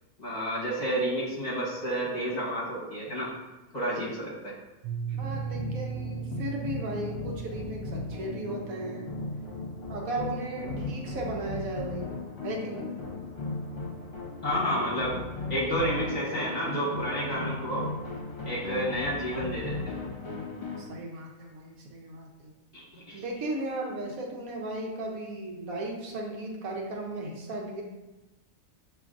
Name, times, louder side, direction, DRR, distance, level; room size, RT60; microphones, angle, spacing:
voice 1, 0.2-3.3 3.7-4.5 14.4-15.2 15.5-17.8 18.4-19.9 22.7-23.2, equal, 30° left, -7 dB, 1.4 m, -30 dB
Piano, 4.8-10.5, right 7 dB, 60° right, 0.7 m, -39 dB
voice 2, 5.0-9.0 9.9-12.1 12.4-12.9 20.8-22.5 23.1-27.8, right 2 dB, 85° right, -1 dB, 1.3 m, -36 dB
sound 1, 5.2-20.9, left 3 dB, 50° left, 1.2 m, -37 dB
7.0 x 3.0 x 2.5 m, 1.1 s
omnidirectional pair, 1.4 m